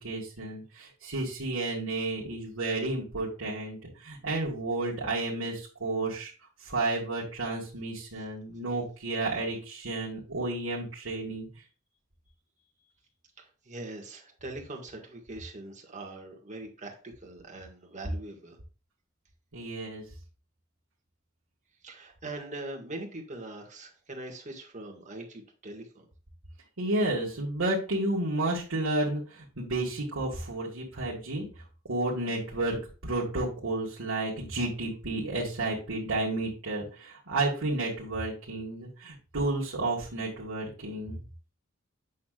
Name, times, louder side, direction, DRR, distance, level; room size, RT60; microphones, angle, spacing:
voice 1, 0.0-6.3 6.6-11.5 19.5-20.0 26.8-31.4 31.9-32.8 33.0-41.2, right 2 dB, 75° right, -5 dB, 1.8 m, -31 dB
voice 2, 13.4-18.6 21.8-26.0, right 2 dB, 35° right, 1 dB, 1.7 m, -42 dB
8.4 x 6.2 x 2.4 m, 0.36 s
head